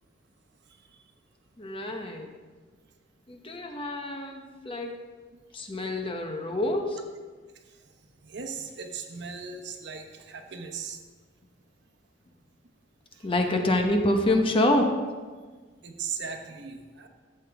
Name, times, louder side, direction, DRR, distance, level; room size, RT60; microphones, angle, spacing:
voice 1, 1.6-2.3 3.3-5.0 5.5-7.0 13.2-14.9, left 1 dB, 30° left, 4 dB, 0.9 m, -26 dB
voice 2, 8.2-11.0 13.1-13.3 15.8-17.1, right 6 dB, 65° right, 4 dB, 1.0 m, -38 dB
12.5 x 7.8 x 3.5 m, 1.4 s
head